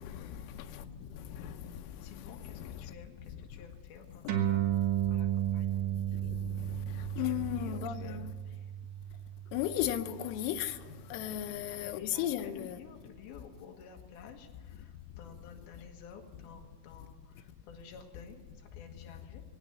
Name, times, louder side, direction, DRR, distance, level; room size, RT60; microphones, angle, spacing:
voice 1, 0.0-1.8 2.2-3.0 4.2-4.4 6.2-8.3 9.5-10.8 11.1-12.8, left 11 dB, 85° left, 3.2 m, -36 dB
voice 2, 2.0-5.8 7.2-8.6 11.5-19.4, left 6 dB, 65° left, 2.8 m, -53 dB
sound 1, 4.3-11.1, right 11 dB, 65° right, 2.9 m, -34 dB
21.0 x 9.2 x 7.0 m
omnidirectional pair, 5.5 m